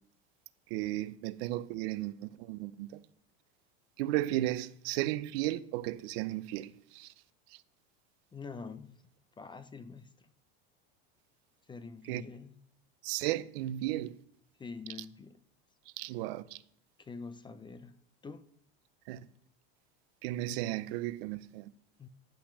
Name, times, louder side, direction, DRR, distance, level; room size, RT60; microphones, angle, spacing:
voice 1, 0.7-2.9 4.0-7.1 12.1-12.2 13.0-14.1 16.0-16.6 19.1-19.2 20.2-21.7, right 15 dB, 70° right, 0.7 m, -34 dB
voice 2, 8.3-9.0 9.4-10.3 11.7-12.6 14.6-15.4 17.0-18.5 22.0-22.1, left 4 dB, 15° left, 0.5 m, -46 dB
10.5 x 5.7 x 6.5 m
supercardioid pair, 120°, 32 cm